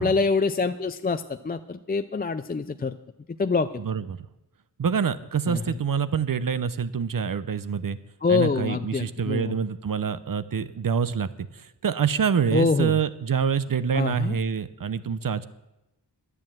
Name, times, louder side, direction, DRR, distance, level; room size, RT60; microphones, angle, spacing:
voice 1, 0.0-2.9 3.4-3.7 5.5-5.8 8.2-9.6 12.5-12.9 13.9-14.4, left 4 dB, 25° left, 9 dB, 0.4 m, -25 dB
voice 2, 3.8-4.2 4.8-8.0 8.3-15.5, right 7 dB, 50° right, 14 dB, 0.8 m, -26 dB
10.5 x 9.7 x 7.7 m, 0.94 s
wide cardioid pair, 70°, 42 cm